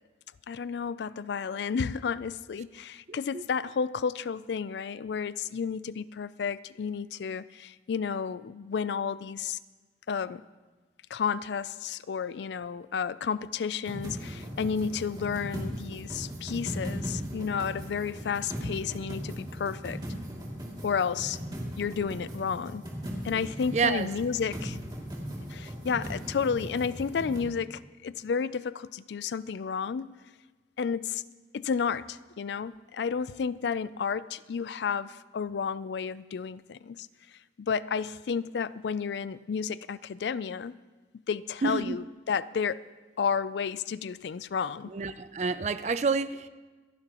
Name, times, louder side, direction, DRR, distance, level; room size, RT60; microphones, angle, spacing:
voice 1, 0.5-9.6 10.1-10.4 11.1-20.0 20.8-21.4 21.8-22.8 23.2-24.8 25.5-30.2 30.8-31.2 31.5-37.1 37.6-40.7 41.3-42.8 43.2-44.9, left 6 dB, 75° left, 18 dB, 0.4 m, -32 dB
voice 2, 3.1-3.4 23.7-24.1 41.6-42.0 44.9-46.5, right 4 dB, 40° right, 13 dB, 0.4 m, -29 dB
sound 1, 13.9-27.4, equal, 25° right, 2.6 m, -38 dB
27.5 x 11.0 x 3.0 m, 1.3 s
head